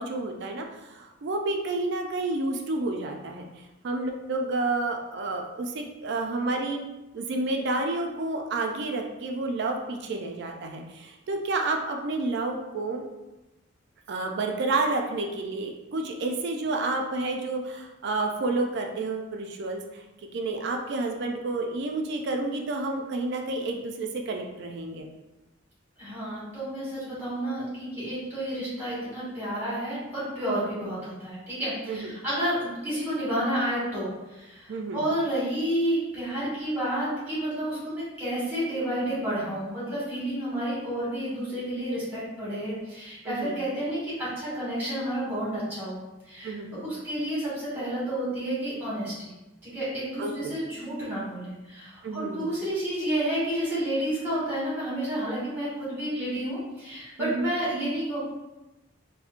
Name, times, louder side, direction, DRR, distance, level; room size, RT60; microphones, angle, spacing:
voice 1, 0.0-3.5 3.8-6.8 7.1-13.0 14.1-20.0 20.3-25.1 30.7-30.9 31.9-32.1 34.7-35.1 43.2-43.6 46.4-46.9 50.2-50.5 52.0-52.5 57.2-57.5, right 2 dB, 55° right, 3 dB, 0.4 m, -30 dB
voice 2, 26.0-46.0 46.2-46.5 46.8-49.3 49.6-58.2, right 1 dB, 10° right, -9 dB, 1.4 m, -30 dB
4.2 x 2.1 x 2.4 m, 1.0 s
head